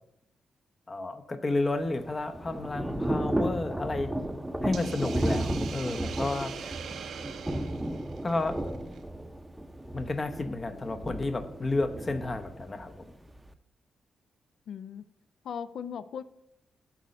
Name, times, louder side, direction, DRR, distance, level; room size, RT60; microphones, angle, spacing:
voice 1, 0.9-4.1 4.6-6.9 8.2-8.5 9.9-13.0, left 2 dB, 35° left, 9 dB, 0.7 m, -31 dB
Thunder / Rain, 1.6-13.5, right 1 dB, 10° right, 0.6 m, -34 dB
Hiss, 4.7-9.0, right 7 dB, 70° right, 0.5 m, -43 dB
voice 2, 14.7-15.0 15.4-16.2, left 7 dB, 70° left, 14 dB, 0.3 m, -38 dB
6.1 x 4.1 x 6.3 m, 0.81 s
supercardioid pair, 50°, 0 cm